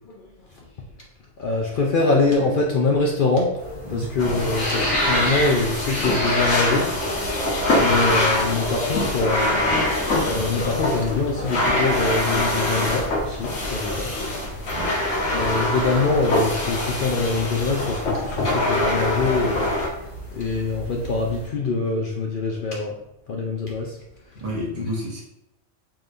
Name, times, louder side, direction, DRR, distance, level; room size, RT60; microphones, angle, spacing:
voice 1, 1.4-6.9 7.8-9.7 10.3-14.1 15.3-19.7 20.3-22.9 23.3-24.0 24.3-24.4 24.8-24.9, left 3 dB, 60° left, -2 dB, 0.6 m, -24 dB
sound 1, 3.6-21.5, equal, 35° left, 1.1 m, -34 dB
sound 2, 4.2-19.9, left 1 dB, 80° left, 1.3 m, -24 dB
voice 2, 24.4-25.2, equal, 30° right, -4 dB, 0.9 m, -30 dB
5.0 x 2.8 x 2.5 m, 0.86 s
omnidirectional pair, 1.3 m